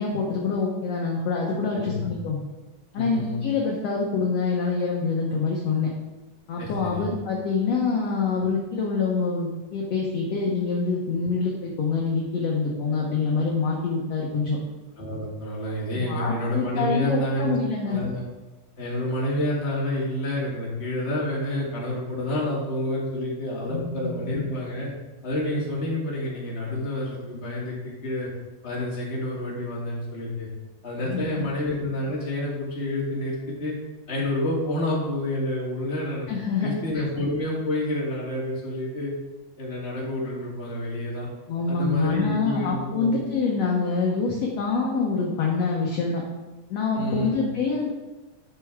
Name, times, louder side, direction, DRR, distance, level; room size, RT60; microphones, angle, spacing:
voice 1, 0.0-2.4 2.9-5.9 6.5-14.6 15.9-18.0 23.7-24.1 31.0-31.5 36.3-36.7 36.9-37.0 41.5-46.2 46.7-47.9, left 4 dB, 65° left, -2 dB, 1.8 m, -26 dB
voice 2, 1.7-2.1 2.9-3.4 6.6-7.1 15.0-17.6 17.9-18.2 18.8-24.9 25.2-28.3 28.6-30.5 30.8-33.7 34.1-36.3 36.6-39.1 39.6-41.3 41.7-43.3 46.9-47.5, left 1 dB, 20° left, -5 dB, 2.1 m, -29 dB
11.5 x 6.0 x 3.6 m, 1.2 s
omnidirectional pair, 3.9 m